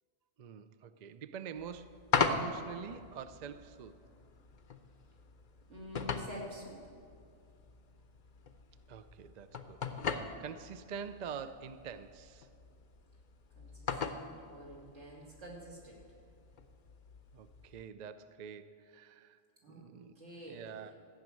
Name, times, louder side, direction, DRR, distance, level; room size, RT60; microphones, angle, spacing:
voice 1, 0.4-2.0 2.3-3.9 8.9-9.8 10.4-12.5 17.3-19.4 19.7-20.1 20.5-20.9, right 7 dB, 55° right, 12 dB, 0.5 m, -46 dB
sound 1, 1.6-17.9, left 5 dB, 50° left, 0.7 m, -40 dB
voice 2, 5.7-6.9 13.6-16.0 19.6-19.8 20.2-20.7, equal, 80° right, -4 dB, 3.1 m, -48 dB
14.0 x 6.3 x 9.0 m, 2.3 s
omnidirectional pair, 1.2 m